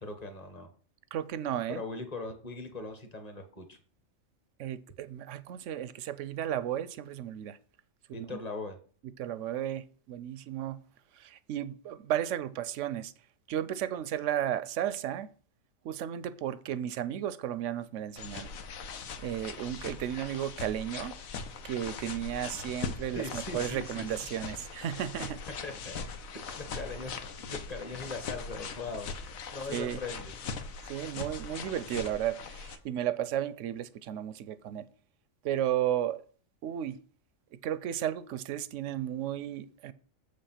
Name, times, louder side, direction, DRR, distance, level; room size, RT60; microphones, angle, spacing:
voice 1, 0.0-0.7 1.7-3.8 8.1-8.8 23.1-24.2 25.6-26.0 26.5-27.1 27.4-29.1 29.5-30.3, left 3 dB, 30° left, 1.4 m, -40 dB
voice 2, 1.1-1.8 4.6-7.6 8.1-8.3 9.2-10.8 11.2-13.1 13.5-15.3 15.8-18.5 19.2-21.1 21.6-25.4 29.7-30.0 30.9-34.9 35.4-36.2 36.6-37.0 37.6-39.9, right 11 dB, 70° right, 0.9 m, -34 dB
sound 1, 18.2-32.8, left 5 dB, 80° left, 1.3 m, -41 dB
7.3 x 5.2 x 5.8 m
omnidirectional pair, 1.4 m